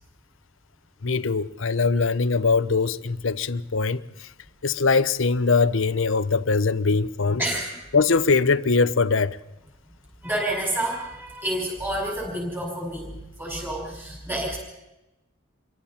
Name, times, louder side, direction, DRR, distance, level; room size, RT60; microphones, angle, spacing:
voice 1, 1.0-4.3 4.6-7.4 7.9-9.4, left 4 dB, 65° left, 0.8 m, -22 dB
voice 2, 7.4-7.8 10.2-14.6, right 1 dB, 10° right, 5.3 m, -29 dB
27.5 x 23.5 x 4.3 m
head